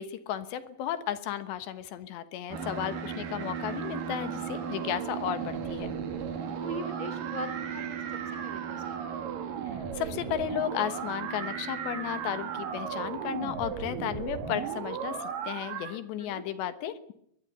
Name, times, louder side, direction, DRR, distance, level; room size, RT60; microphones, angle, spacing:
voice 1, 0.0-6.0 9.9-17.1, left 10 dB, 70° left, 12 dB, 3.3 m, -34 dB
sound 1, 2.5-16.0, right 7 dB, 55° right, 3.2 m, -35 dB
voice 2, 6.5-7.9 8.4-9.3 16.1-16.4, right 1 dB, 25° right, 9 dB, 1.0 m, -41 dB
22.5 x 20.5 x 9.0 m, 0.73 s
omnidirectional pair, 5.5 m